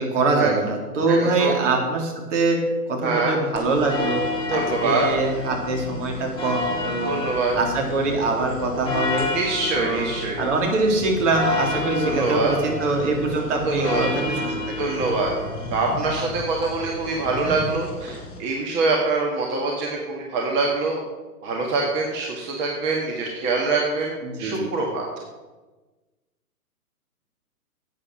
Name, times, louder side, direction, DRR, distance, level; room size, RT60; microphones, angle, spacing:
voice 1, 0.0-2.6 2.9-4.2 4.5-7.2 7.6-9.3 9.7-10.1 10.4-14.7 24.2-24.7, right 3 dB, 50° right, 1 dB, 3.2 m, -23 dB
voice 2, 1.1-1.5 3.0-3.4 4.5-5.1 7.0-7.5 9.3-10.4 12.0-12.5 13.6-14.1 14.8-15.3 15.7-21.0 21.4-25.0, right 3 dB, 25° right, -1 dB, 1.6 m, -24 dB
sound 1, 3.5-18.4, left 2 dB, 10° left, 2.9 m, -30 dB
11.0 x 8.5 x 6.2 m, 1.2 s
hypercardioid pair, 135°, 47 cm